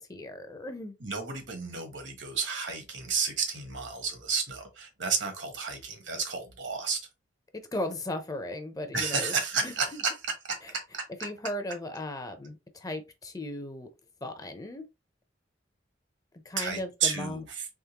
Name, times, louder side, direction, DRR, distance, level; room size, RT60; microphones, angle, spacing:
voice 1, 0.0-1.0 7.7-9.3 9.6-10.0 10.6-10.7 11.2-13.9 14.2-14.9 16.4-17.4, left 1 dB, 20° left, 0.6 m, -36 dB
voice 2, 1.0-7.0 8.9-10.1 10.4-11.0 16.6-17.7, right 5 dB, 70° right, 1.2 m, -31 dB
3.6 x 3.1 x 2.9 m
head